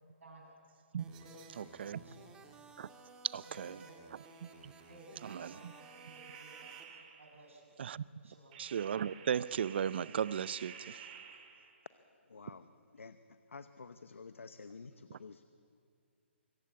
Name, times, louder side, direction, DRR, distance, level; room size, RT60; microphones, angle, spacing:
voice 1, 0.2-0.6 1.2-2.2 3.4-4.1 4.9-6.7 7.2-7.8 8.2-8.6, right 1 dB, 80° right, -1 dB, 6.6 m, -57 dB
sound 1, 1.0-6.8, right 3 dB, 10° right, 1.8 m, -57 dB
sound 2, 1.1-2.4 4.2-7.5 8.5-11.9, right 7 dB, 40° right, 2.3 m, -54 dB
voice 2, 1.6-2.0 2.8-2.9 3.2-3.8 4.6-4.7 5.2-5.7 7.8-8.0 8.6-11.0 15.1-15.2, right 8 dB, 60° right, 20 dB, 0.6 m, -36 dB
voice 3, 12.3-12.7 12.9-13.2 13.5-15.5, left 4 dB, 85° left, 12 dB, 0.8 m, -50 dB
24.5 x 15.0 x 8.3 m, 2.4 s
hypercardioid pair, 145°, 7 cm